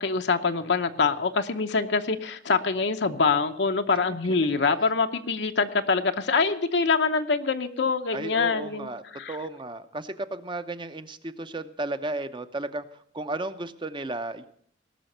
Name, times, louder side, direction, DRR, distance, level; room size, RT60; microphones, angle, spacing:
voice 1, 0.0-8.9 9.1-9.4, left 4 dB, 70° left, 6 dB, 0.8 m, -25 dB
voice 2, 8.1-9.0 9.3-12.8 13.1-14.5, right 2 dB, 25° right, 10 dB, 0.8 m, -34 dB
18.5 x 6.3 x 7.9 m, 0.64 s
head